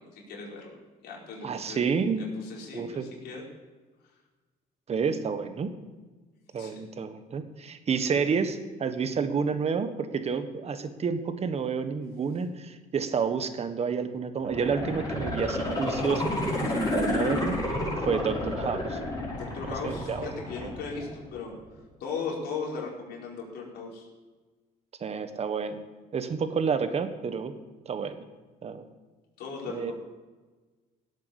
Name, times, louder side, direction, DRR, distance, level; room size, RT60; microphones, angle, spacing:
voice 1, 0.1-0.7 1.0-1.8 2.4-3.4 6.6-6.8 19.3-21.5 22.0-24.1 29.4-29.9, left 5 dB, 75° left, -3 dB, 4.8 m, -37 dB
voice 2, 1.4-2.2 2.7-3.1 4.9-5.7 6.5-17.6 18.0-19.0 19.8-20.3 20.6-20.7 25.0-25.8 26.1-27.5 27.8-28.3 28.6-28.9 29.7-29.9, right 5 dB, 40° right, 9 dB, 1.4 m, -29 dB
sound 1, 14.4-21.4 21.8-21.9, left 1 dB, 20° left, 5.3 m, -31 dB
16.5 x 8.4 x 7.1 m, 1.3 s
cardioid pair, 110°, 17 cm